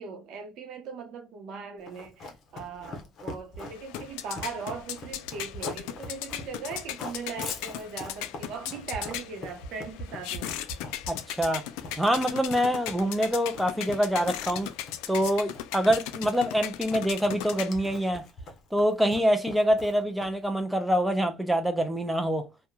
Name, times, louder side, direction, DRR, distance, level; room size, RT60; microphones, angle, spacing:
voice 1, 0.0-10.6, right 5 dB, 65° right, 0.8 m, -39 dB
Run, 1.9-20.5, left 2 dB, 50° left, 0.8 m, -42 dB
sound 1, 3.6-18.1, left 12 dB, 80° left, 0.3 m, -38 dB
voice 2, 11.1-11.6 12.0-14.7 15.1-18.2 18.7-22.5, equal, 5° right, 0.5 m, -25 dB
2.9 x 2.2 x 2.2 m
supercardioid pair, 100°, 0 cm